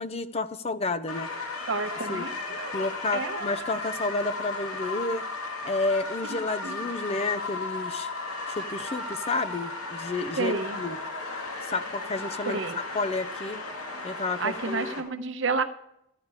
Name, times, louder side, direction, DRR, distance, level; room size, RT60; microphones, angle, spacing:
voice 1, 0.0-1.3 2.1-2.2 2.7-5.3 5.6-8.1 8.5-11.0 11.7-13.6 14.0-14.9, left 3 dB, 30° left, 13 dB, 0.5 m, -31 dB
sound 1, 1.1-15.0, left 3 dB, 80° left, 2.1 m, -35 dB
voice 2, 1.7-2.7 3.1-3.5 6.3-6.9 10.4-10.8 12.5-12.8 14.4-15.6, right 4 dB, 55° right, 8 dB, 0.9 m, -30 dB
14.5 x 9.7 x 4.8 m, 0.80 s
head